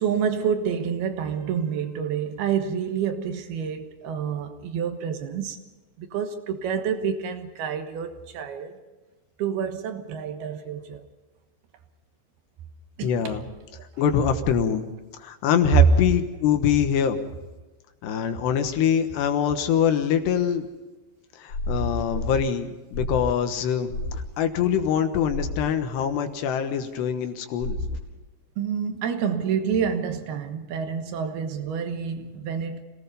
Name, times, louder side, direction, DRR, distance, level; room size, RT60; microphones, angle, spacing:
voice 1, 0.0-5.6 6.0-8.8 9.4-11.1 13.0-13.4 13.7-13.9 28.6-32.8, right 7 dB, 65° right, 2.9 m, -28 dB
voice 2, 13.0-13.4 14.0-14.9 15.2-17.2 18.0-20.7 21.4-27.8, left 8 dB, 70° left, 3.1 m, -24 dB
sound 1, 21.5-22.4 22.9-23.3 23.9-24.2 25.3-25.6 27.6-28.0, left 1 dB, 40° left, 3.3 m, -29 dB
27.0 x 18.5 x 5.5 m
omnidirectional pair, 5.5 m